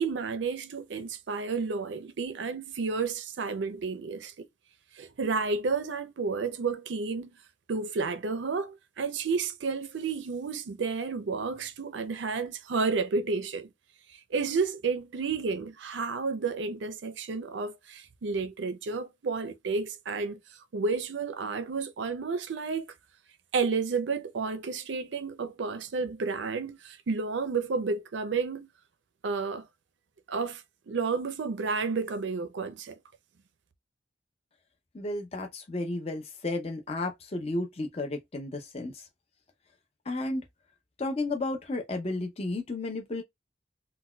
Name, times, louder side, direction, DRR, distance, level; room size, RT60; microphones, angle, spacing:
voice 1, 0.0-4.5 4.9-7.3 7.7-13.7 14.3-22.8 23.5-28.7 29.2-29.7 30.3-33.0, right 4 dB, 75° right, 0.5 m, -31 dB
voice 2, 34.9-39.1 40.1-40.4 41.0-43.2, left 2 dB, 35° left, 0.5 m, -33 dB
3.9 x 2.2 x 2.2 m
head